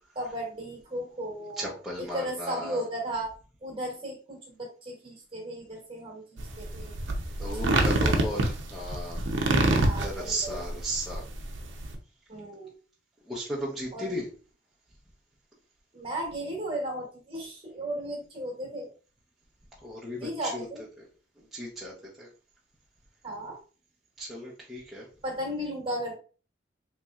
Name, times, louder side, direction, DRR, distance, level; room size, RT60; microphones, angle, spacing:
voice 1, 0.1-3.3 3.6-7.0 9.8-10.6 12.3-12.7 13.9-14.1 15.9-18.9 20.2-20.8 23.2-23.6 25.2-26.2, right 1 dB, 25° right, 0 dB, 1.2 m, -35 dB
voice 2, 1.6-2.8 7.4-9.2 10.0-11.2 13.2-14.3 19.8-20.7 21.0-21.1 21.4-22.3 24.2-25.1, right 1 dB, ahead, -8 dB, 0.7 m, -35 dB
sound 1, 6.4-12.0, right 2 dB, 70° right, 0.6 m, -26 dB
4.1 x 3.1 x 2.3 m, 0.37 s
head